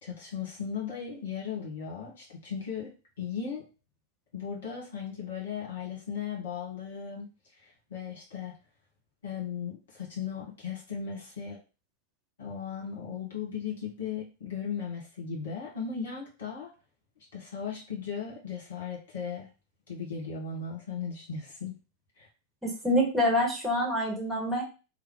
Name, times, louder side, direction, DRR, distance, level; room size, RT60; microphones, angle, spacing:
voice 1, 0.0-2.9 3.2-3.6 4.3-7.3 7.6-8.5 9.2-11.6 12.4-16.7 17.3-19.5 19.9-21.7 22.2-22.3, left 6 dB, 65° left, -3 dB, 1.5 m, -37 dB
voice 2, 22.6-24.6, equal, 5° right, -4 dB, 1.2 m, -26 dB
3.3 x 2.1 x 3.6 m, 0.32 s
figure-of-eight pair, 90°, 0 cm